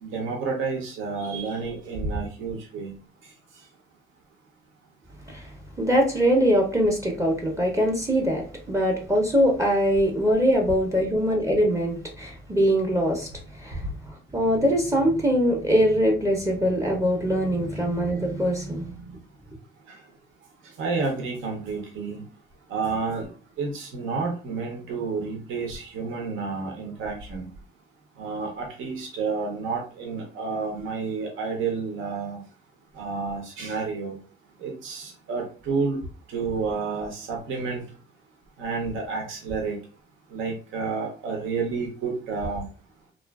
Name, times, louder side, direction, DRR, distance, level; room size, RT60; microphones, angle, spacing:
voice 1, 0.0-2.9 19.9-20.0 20.8-22.2 22.7-23.3 23.6-27.5 28.2-32.4 32.9-34.2 34.6-36.0 36.3-37.8 38.6-39.8 40.3-42.6, right 4 dB, 80° right, 0.7 m, -30 dB
voice 2, 5.3-13.3 13.5-13.9 14.3-19.0, equal, 15° right, 0.6 m, -22 dB
2.4 x 2.4 x 2.2 m
cardioid pair, 90°, 20 cm